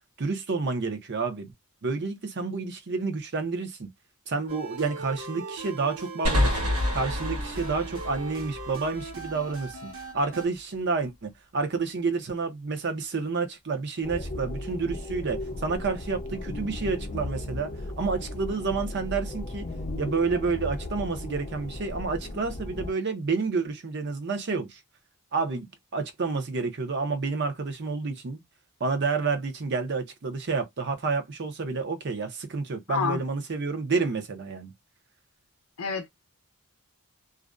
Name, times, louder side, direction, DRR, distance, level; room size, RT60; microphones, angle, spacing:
voice 1, 0.2-1.5 1.8-3.9 4.3-6.6 6.9-17.7 18.0-19.6 20.0-24.8 25.3-25.7 25.9-28.4 28.8-34.7, right 4 dB, 50° right, 0.6 m, -29 dB
sound 1, 4.5-10.5, right 4 dB, 65° right, 1.1 m, -39 dB
sound 2, 6.2-9.7, left 1 dB, 90° right, 1.2 m, -29 dB
sound 3, 14.0-22.9, left 2 dB, 35° left, 0.6 m, -36 dB
voice 2, 32.9-33.2 35.8-36.1, left 5 dB, 80° left, 0.5 m, -28 dB
2.4 x 2.1 x 2.4 m
head